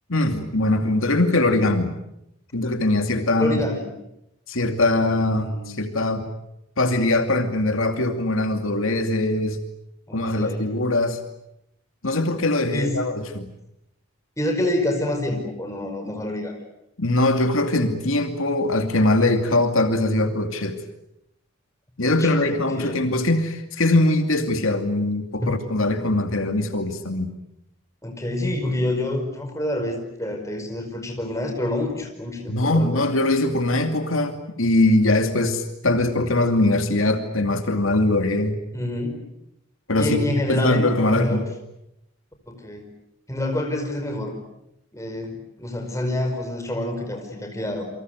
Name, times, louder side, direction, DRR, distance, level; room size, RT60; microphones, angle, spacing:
voice 1, 0.1-2.0 2.5-3.6 4.5-6.3 6.8-9.6 10.1-11.2 12.0-13.5 17.0-20.8 22.0-27.3 32.5-38.6 39.9-41.5, left 2 dB, 75° left, 6 dB, 2.6 m, -21 dB
voice 2, 3.4-3.9 5.1-5.7 10.1-10.7 12.7-13.0 14.4-16.5 22.0-23.1 25.4-25.5 28.0-33.0 38.7-39.2 40.0-41.4 42.5-42.9 43.3-44.4 44.9-47.8, left 1 dB, 15° left, 4 dB, 5.0 m, -27 dB
29.0 x 24.5 x 8.0 m, 0.82 s
head